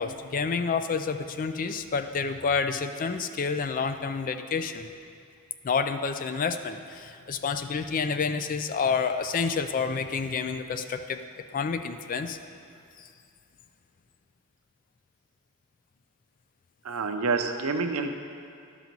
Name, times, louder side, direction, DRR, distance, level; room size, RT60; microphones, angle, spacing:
voice 1, 0.0-4.9 5.6-11.2 11.5-12.4 13.0-13.1, left 5 dB, 40° left, 9 dB, 0.4 m, -29 dB
voice 2, 16.8-18.2, right 4 dB, 75° right, 6 dB, 0.6 m, -28 dB
11.5 x 4.0 x 6.0 m, 2.4 s
head